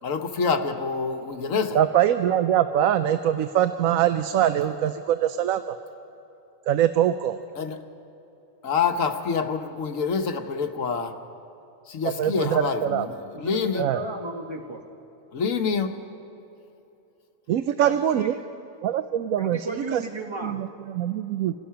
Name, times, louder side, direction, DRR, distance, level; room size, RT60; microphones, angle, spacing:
voice 1, 0.0-1.8 7.5-7.8 8.6-11.2 11.9-13.9 15.3-16.0, left 5 dB, 75° left, 6 dB, 1.4 m, -27 dB
voice 2, 1.7-5.8 6.7-7.4 12.2-13.1 13.8-14.0 17.5-18.4 18.8-20.0 20.4-21.5, right 10 dB, 90° right, 10 dB, 1.1 m, -23 dB
voice 3, 13.3-14.8 17.8-18.3 19.4-20.6, right 2 dB, 20° right, 3 dB, 1.3 m, -34 dB
27.0 x 17.0 x 5.7 m, 2.9 s
omnidirectional pair, 1.4 m